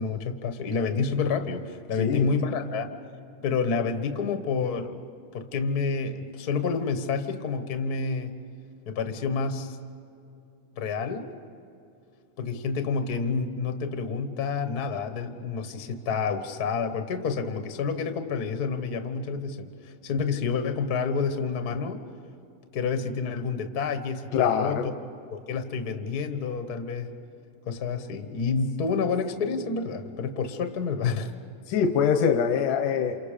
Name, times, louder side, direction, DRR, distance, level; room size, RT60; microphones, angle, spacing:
voice 1, 0.0-2.9 3.4-5.0 5.3-8.3 8.9-9.8 10.8-11.3 12.4-19.7 20.0-22.0 22.7-24.9 25.3-27.1 27.7-31.3, left 5 dB, 60° left, 8 dB, 1.0 m, -29 dB
voice 2, 24.3-24.9 31.7-33.2, left 7 dB, 80° left, 6 dB, 2.4 m, -23 dB
28.5 x 28.0 x 5.1 m, 2.6 s
omnidirectional pair, 3.6 m